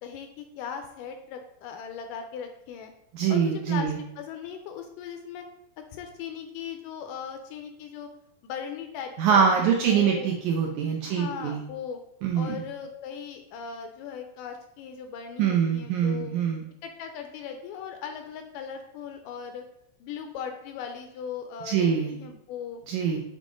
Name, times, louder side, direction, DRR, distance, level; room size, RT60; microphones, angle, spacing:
voice 1, 0.0-2.9 3.3-5.5 5.9-8.1 8.4-10.3 11.0-12.0 12.3-16.3 16.8-19.6 20.0-22.8, left 7 dB, 80° left, 6 dB, 2.0 m, -38 dB
voice 2, 3.1-4.0 9.2-11.6 12.2-12.6 15.4-16.6 21.7-22.1 22.9-23.2, right 7 dB, 80° right, 1 dB, 1.8 m, -24 dB
7.5 x 3.6 x 5.0 m, 0.79 s
omnidirectional pair, 4.2 m